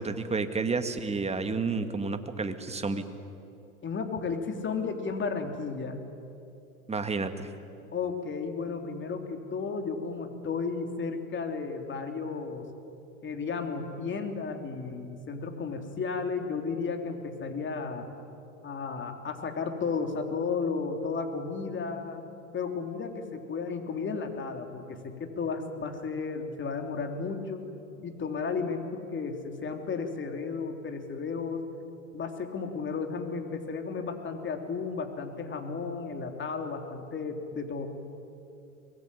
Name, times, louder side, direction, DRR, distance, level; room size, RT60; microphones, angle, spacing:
voice 1, 0.0-3.0 6.9-7.5, right 4 dB, 15° right, 9 dB, 1.9 m, -30 dB
voice 2, 3.8-6.0 7.9-12.7 13.2-18.1 18.6-22.2 22.5-27.6 28.0-31.6 32.1-37.9, left 5 dB, 25° left, 5 dB, 3.3 m, -33 dB
24.0 x 21.0 x 9.9 m, 2.7 s
hypercardioid pair, 100°, 42 cm